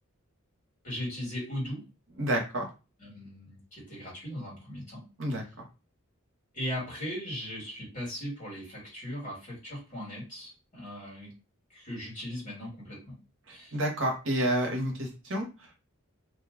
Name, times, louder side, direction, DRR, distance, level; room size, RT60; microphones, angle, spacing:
voice 1, 0.8-1.8 3.0-5.0 6.5-11.3 11.7-13.2 13.5-13.8, equal, 35° left, -4 dB, 1.6 m, -38 dB
voice 2, 2.2-2.7 5.2-5.6 13.5-15.5, right 1 dB, 60° right, 2 dB, 1.0 m, -29 dB
2.7 x 2.2 x 3.6 m, 0.30 s
head